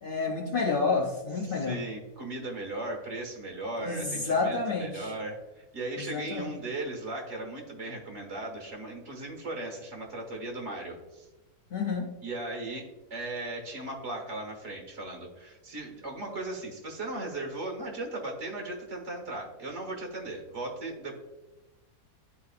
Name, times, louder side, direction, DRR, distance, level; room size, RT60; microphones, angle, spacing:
voice 1, 0.0-1.8 3.8-5.1 6.0-6.5 11.7-12.1, left 4 dB, 60° left, 0 dB, 0.5 m, -29 dB
voice 2, 1.4-11.3 12.2-21.1, right 2 dB, 45° right, 1 dB, 1.8 m, -37 dB
11.0 x 4.3 x 2.4 m, 1.1 s
omnidirectional pair, 1.7 m